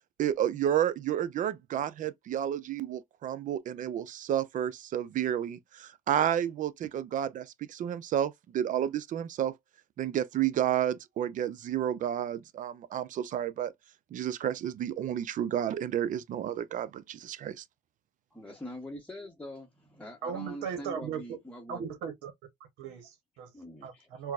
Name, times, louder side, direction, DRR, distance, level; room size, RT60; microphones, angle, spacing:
voice 1, 0.2-9.5 10.0-13.7 14.1-17.6, right 10 dB, 50° right, 0.4 m, -31 dB
voice 2, 18.3-21.9 23.5-23.9, equal, 10° left, 0.7 m, -43 dB
voice 3, 20.2-21.2 21.7-22.3 22.8-23.5 23.8-23.9 24.2-24.3, right 7 dB, 90° right, 0.8 m, -37 dB
4.4 x 2.0 x 2.2 m
cardioid pair, 110°, 17 cm